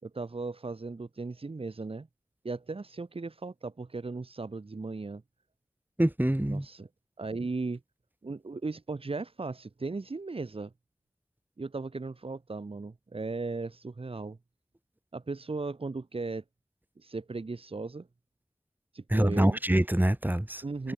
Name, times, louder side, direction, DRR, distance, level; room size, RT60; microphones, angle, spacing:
voice 1, 0.0-2.1 2.4-5.2 6.4-6.9 7.2-7.8 8.2-10.7 11.6-14.4 15.1-16.4 17.0-18.1 18.9-19.6 20.6-20.9, right 3 dB, 90° right, 5.0 m, -37 dB
voice 2, 6.0-6.6 19.1-20.9, right 1 dB, 20° right, 3.3 m, -25 dB
wide cardioid pair, 50°, 9 cm